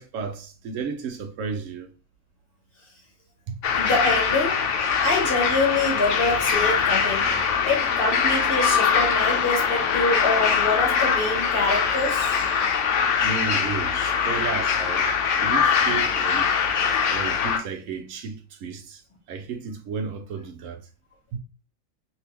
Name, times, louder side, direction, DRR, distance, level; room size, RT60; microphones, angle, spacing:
voice 1, 0.0-1.9 3.5-3.8 10.0-10.1 13.2-15.2 15.4-16.5 17.1-19.0 19.3-20.8 21.3-21.4, right 5 dB, 75° right, 1.0 m, -33 dB
sound 1, 3.6-17.6, left 6 dB, 70° left, 0.9 m, -22 dB
voice 2, 3.7-4.6 5.0-7.3 7.6-12.4, left 2 dB, 45° left, 1.3 m, -25 dB
3.4 x 2.9 x 2.8 m
omnidirectional pair, 1.4 m